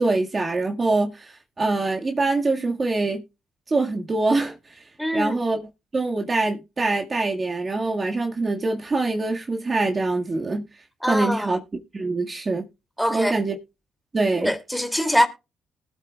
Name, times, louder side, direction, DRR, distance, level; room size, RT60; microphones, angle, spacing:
voice 1, 0.0-3.2 3.7-4.8 5.1-5.7 5.9-10.6 11.1-11.6 11.9-12.6 13.1-13.6 14.1-14.5, right 3 dB, 30° right, 1.7 m, -24 dB
voice 2, 5.0-5.4 11.0-11.6 13.0-13.4 14.4-15.3, equal, 5° left, 2.4 m, -23 dB
19.5 x 8.0 x 2.3 m
cardioid pair, 90°, 0 cm